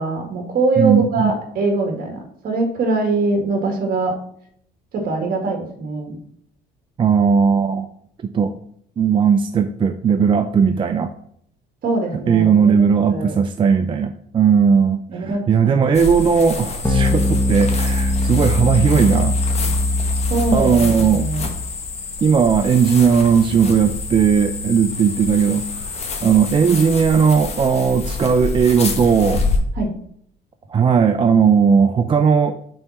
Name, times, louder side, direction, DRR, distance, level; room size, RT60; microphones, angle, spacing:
voice 1, 0.0-4.1 4.9-6.2 11.8-13.4 15.1-15.7 19.7-19.8 20.3-21.5 29.8-29.9, right 3 dB, 60° right, 3 dB, 1.8 m, -23 dB
voice 2, 0.8-1.3 7.0-7.9 8.2-8.5 9.0-11.1 12.3-19.4 20.5-21.3 22.2-29.4 30.7-32.5, right 6 dB, 30° right, 7 dB, 0.5 m, -17 dB
sound 1, 15.9-29.6, left 4 dB, 40° left, 1.3 m, -28 dB
sound 2, 16.8-21.6, left 1 dB, 10° left, 1.1 m, -21 dB
5.5 x 4.1 x 5.7 m, 0.68 s
cardioid pair, 110°, 17 cm